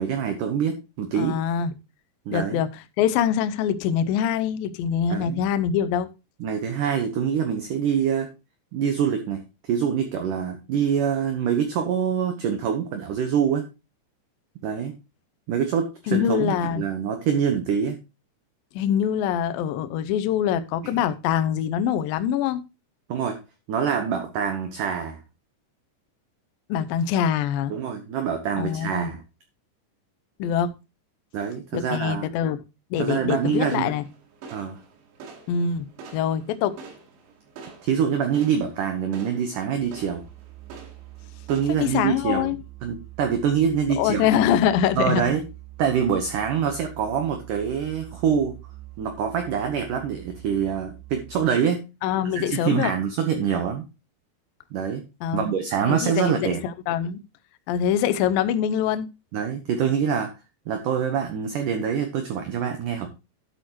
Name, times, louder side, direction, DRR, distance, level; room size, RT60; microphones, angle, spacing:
voice 1, 0.0-1.4 2.3-2.6 5.1-5.4 6.4-8.3 8.7-13.7 14.6-14.9 15.5-18.0 20.8-21.0 23.1-23.4 23.7-25.2 27.7-29.2 31.3-32.3 33.0-33.9 34.5-34.8 37.8-40.2 41.5-42.5 42.8-44.3 45.0-45.4 45.8-48.6 49.0-51.8 52.3-53.8 54.7-55.0 55.3-56.6 59.3-60.3 60.7-63.1, right 7 dB, 70° right, 2.0 m, -25 dB
voice 2, 1.2-1.7 2.3-2.7 3.0-6.1 16.1-16.8 18.8-22.6 26.7-27.7 28.6-29.1 30.4-30.7 31.7-32.6 32.9-34.0 35.5-35.9 36.1-36.8 41.7-42.6 44.0-45.4 52.0-52.9 55.2-55.5 55.9-56.5 56.9-57.2 57.7-59.1, left 9 dB, 85° left, 2.0 m, -24 dB
sound 1, 33.0-41.6, right 4 dB, 90° right, 4.4 m, -46 dB
Musical instrument, 39.7-51.7, right 17 dB, 20° right, 3.1 m, -44 dB
12.0 x 8.4 x 3.0 m
omnidirectional pair, 5.1 m